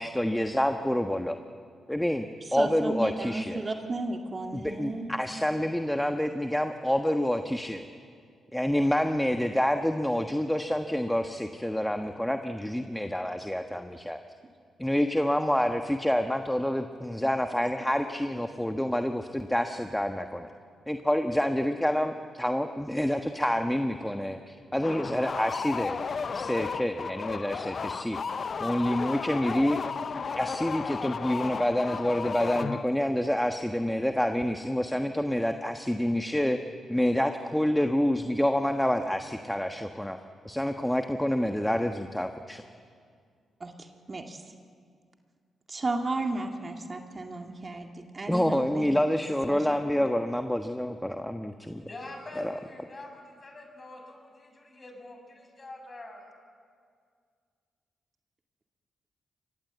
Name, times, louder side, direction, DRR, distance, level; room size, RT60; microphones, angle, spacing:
voice 1, 0.0-1.4 1.9-3.6 4.5-7.8 8.5-14.2 14.8-20.5 20.9-26.0 26.3-28.2 28.6-29.8 30.4-36.6 36.9-40.2 40.4-42.6 48.3-51.8, left 1 dB, 5° left, 6 dB, 1.3 m, -28 dB
voice 2, 2.5-5.1 43.6-44.4 45.7-49.0 49.5-49.6, right 2 dB, 40° right, 4 dB, 2.1 m, -34 dB
sound 1, 24.8-33.1, left 5 dB, 55° left, 0.7 m, -34 dB
voice 3, 51.9-56.4, left 2 dB, 40° left, 3 dB, 6.8 m, -45 dB
24.0 x 20.0 x 8.1 m, 2.1 s
hypercardioid pair, 40°, 0 cm